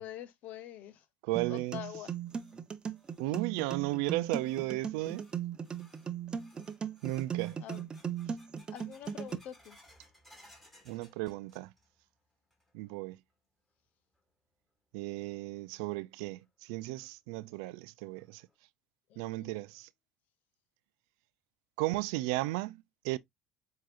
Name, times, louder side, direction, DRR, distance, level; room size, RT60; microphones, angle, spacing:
voice 1, 0.0-1.0 1.5-2.1 7.6-7.8 8.7-9.8 19.1-19.6, left 11 dB, 65° left, 0.8 m, -45 dB
voice 2, 1.2-1.8 3.2-5.2 7.0-7.6 10.9-11.7 12.7-13.2 14.9-18.4 19.2-19.9 21.8-23.2, right 19 dB, 85° right, 0.3 m, -34 dB
sound 1, 1.4-9.4, right 8 dB, 30° right, 0.6 m, -38 dB
sound 2, 2.2-12.0 12.3-12.9 13.3-13.4 14.1-14.2 15.9-16.0 16.4-16.5 17.0-17.1 17.6-17.7 18.2-18.6, left 1 dB, 10° left, 2.1 m, -63 dB
7.5 x 2.8 x 2.5 m
supercardioid pair, 95°, 3 cm